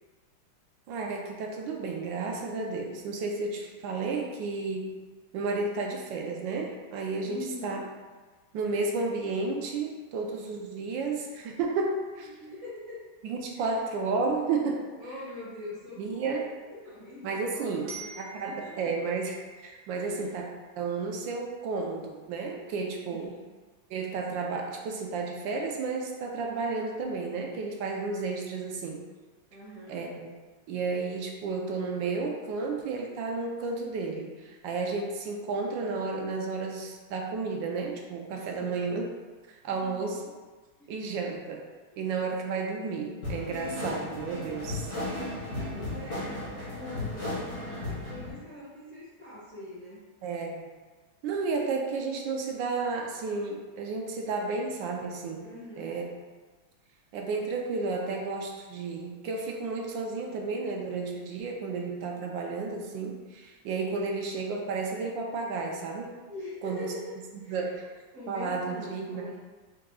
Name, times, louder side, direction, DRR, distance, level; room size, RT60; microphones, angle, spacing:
voice 1, 0.9-4.9 5.3-7.8 8.5-12.3 13.2-14.8 16.0-16.4 17.2-20.5 20.8-23.3 23.9-29.0 29.9-30.4 30.7-39.0 39.5-40.2 40.9-41.7 42.0-44.9 50.2-50.7 51.2-55.4 55.8-56.1 57.1-66.2 66.6-66.9 67.5-67.9 68.3-69.3, right 4 dB, 75° right, 1 dB, 1.2 m, -32 dB
voice 2, 7.2-7.9 12.2-12.9 13.5-13.8 15.0-16.4 16.7-18.9 20.0-20.4 23.1-23.5 29.5-30.1 38.3-38.8 39.7-40.2 40.8-40.9 41.9-42.1 45.5-50.0 55.4-56.0 66.3-67.9 68.1-69.3, left 2 dB, 40° right, -10 dB, 1.4 m, -43 dB
Glockenspiel, 17.9-20.7, right 5 dB, 90° right, 1.9 m, -47 dB
sound 1, 43.2-48.3, left 1 dB, 50° left, 2.0 m, -35 dB
4.8 x 3.8 x 2.3 m, 1.3 s
omnidirectional pair, 2.2 m